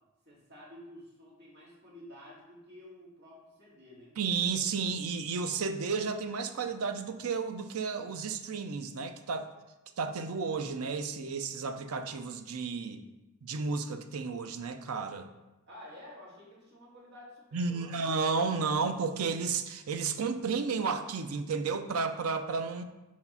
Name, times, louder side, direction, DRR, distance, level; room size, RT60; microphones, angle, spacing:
voice 1, 0.2-4.2 15.7-18.0, left 1 dB, 50° right, -6 dB, 2.1 m, -51 dB
voice 2, 4.2-9.5 10.0-13.0 13.4-15.3 17.5-22.8, right 5 dB, 75° right, 9 dB, 0.5 m, -32 dB
4.7 x 4.2 x 5.5 m, 1.1 s
head